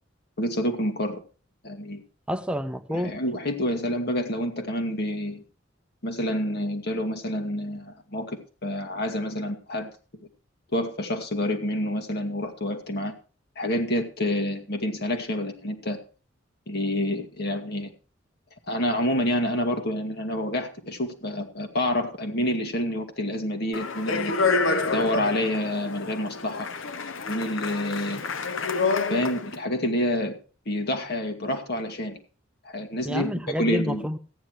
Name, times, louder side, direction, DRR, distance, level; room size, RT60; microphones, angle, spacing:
voice 1, 0.4-1.2 1.6-2.0 2.9-5.4 6.0-9.9 10.7-13.1 13.6-16.0 16.7-17.9 18.7-24.4 24.9-26.7 27.3-28.3 29.1-30.3 30.7-32.2 32.6-33.3 33.6-34.1, left 1 dB, 55° left, 2.1 m, -28 dB
voice 2, 2.3-3.2 33.1-34.2, equal, 5° right, 0.5 m, -28 dB
Speech, 23.7-29.5, left 4 dB, 80° left, 1.0 m, -28 dB
14.0 x 9.8 x 4.8 m
head